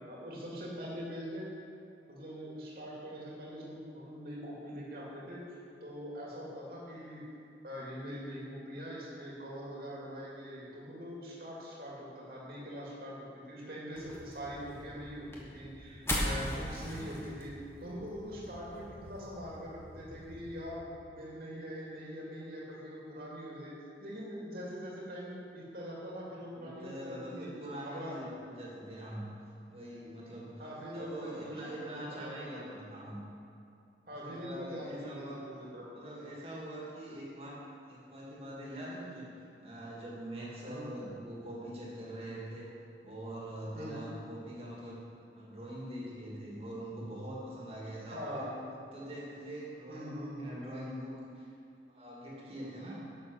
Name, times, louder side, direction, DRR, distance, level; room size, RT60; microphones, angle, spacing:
voice 1, 0.0-1.5 2.1-5.5 5.8-7.2 7.6-17.5 17.8-20.8 21.1-23.7 24.0-27.5 27.9-28.2 30.6-32.6 34.1-35.9 40.7-40.8 43.7-43.9 48.1-48.5 49.9-50.5, equal, 55° right, -5 dB, 2.3 m, -43 dB
sound 1, 13.9-20.7, left 1 dB, 15° left, 1.5 m, -40 dB
voice 2, 16.6-17.1 26.5-29.3 29.7-30.7 30.9-33.2 34.1-35.4 35.9-37.6 37.9-39.3 39.6-42.7 43.0-45.0 45.3-48.6 48.9-51.5 51.9-53.0, right 1 dB, 35° right, -5 dB, 2.4 m, -43 dB
11.0 x 6.9 x 6.4 m, 2.5 s
head